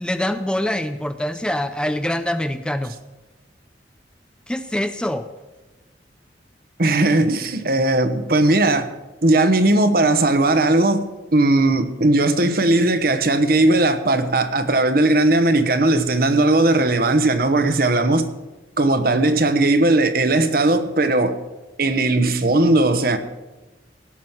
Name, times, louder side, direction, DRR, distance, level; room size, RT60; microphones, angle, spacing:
voice 1, 0.0-2.9 4.5-5.3, left 1 dB, 5° left, 0.5 m, -24 dB
voice 2, 6.8-8.9 9.2-11.0 11.3-18.3 18.8-21.4 21.8-23.2, right 2 dB, 55° right, 1.1 m, -18 dB
17.0 x 6.2 x 7.3 m
head